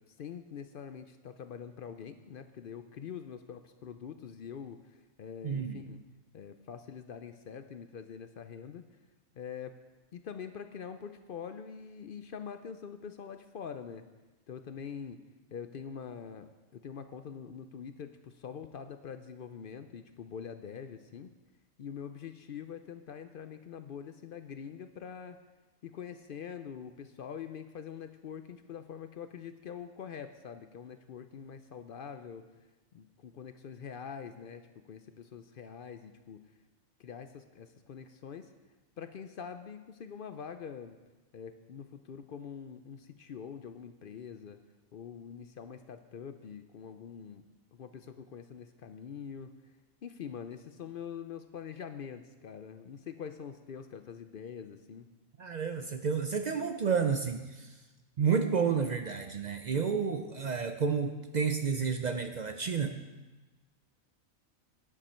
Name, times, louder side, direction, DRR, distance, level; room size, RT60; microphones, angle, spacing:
voice 1, 0.2-6.0 6.3-8.8 9.3-9.8 10.1-14.1 14.5-15.2 15.5-21.3 21.8-25.4 25.8-32.4 32.9-36.4 37.0-38.5 39.0-41.0 41.3-44.6 44.9-47.5 47.7-49.5 50.0-55.1, left 7 dB, 60° left, 9 dB, 0.5 m, -44 dB
voice 2, 5.4-5.8 55.4-57.7 58.2-63.0, right 6 dB, 70° right, 7 dB, 0.4 m, -30 dB
11.0 x 10.0 x 4.4 m, 1.2 s
omnidirectional pair, 1.4 m